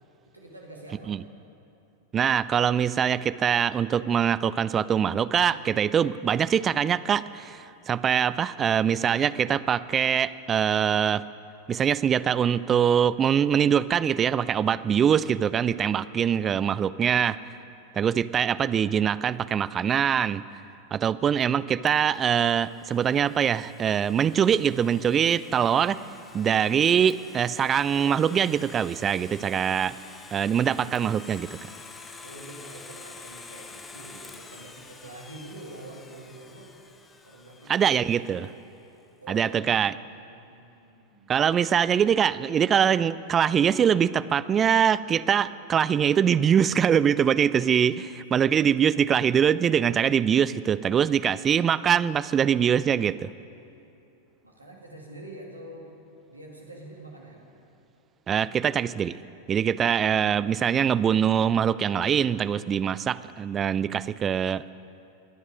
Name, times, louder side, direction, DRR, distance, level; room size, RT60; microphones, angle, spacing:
voice 1, 0.3-1.3 32.2-36.7 37.2-38.1 39.2-39.8 40.1-41.3 54.4-55.9 56.3-57.4, right 1 dB, 85° right, -1 dB, 2.3 m, -45 dB
voice 2, 2.1-11.2 11.7-17.4 17.9-20.4 20.9-26.0 26.3-29.9 30.3-31.5 37.7-38.5 39.3-39.9 41.3-53.3 58.3-59.2 59.5-64.7, right 8 dB, 25° right, 17 dB, 0.3 m, -23 dB
Domestic sounds home sounds, 21.9-38.6, left 4 dB, 15° left, 0.9 m, -48 dB
21.5 x 9.5 x 5.2 m, 2.7 s
figure-of-eight pair, 90°, 0 cm